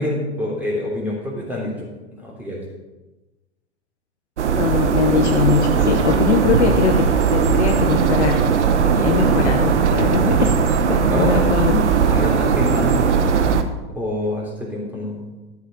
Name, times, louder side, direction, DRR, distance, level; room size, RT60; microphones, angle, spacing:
voice 1, 0.0-2.7 5.8-6.3 11.1-11.4 12.1-13.6 13.9-15.3, left 1 dB, 5° right, -4 dB, 3.2 m, -27 dB
sound 1, 4.4-13.6, right 6 dB, 80° right, 1.0 m, -18 dB
voice 2, 4.5-8.4 8.7-10.6 10.9-11.8, left 8 dB, 70° left, 4 dB, 1.0 m, -21 dB
12.0 x 8.0 x 5.2 m, 1.1 s
hypercardioid pair, 100°, 35 cm